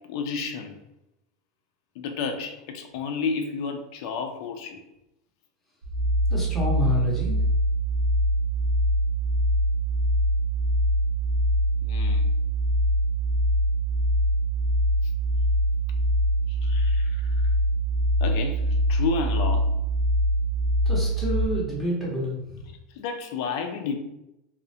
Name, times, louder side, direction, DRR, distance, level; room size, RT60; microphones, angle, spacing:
voice 1, 0.1-0.8 2.0-4.8 11.8-12.3 16.5-17.2 18.2-19.7 23.0-23.9, left 5 dB, 50° left, 5 dB, 0.3 m, -31 dB
sound 1, 5.8-21.5, equal, 65° right, 0.4 m, -23 dB
voice 2, 6.3-7.4 20.9-22.6, equal, 5° left, -7 dB, 0.7 m, -28 dB
2.4 x 2.0 x 2.7 m, 0.88 s
supercardioid pair, 180°, 3 cm